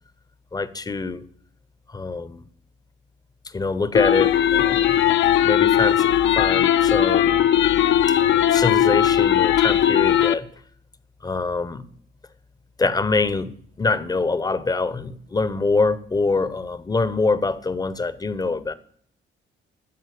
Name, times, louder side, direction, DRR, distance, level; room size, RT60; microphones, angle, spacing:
voice 1, 0.5-1.3 1.9-2.4 3.5-5.0 5.4-6.1 6.4-7.4 8.1-10.5 11.2-11.8 12.8-13.5 13.8-18.7, left 3 dB, 20° left, 0.6 m, -24 dB
sound 1, 3.9-10.3, left 10 dB, 70° left, 0.5 m, -18 dB
12.5 x 4.2 x 6.5 m
cardioid pair, 90°, 20 cm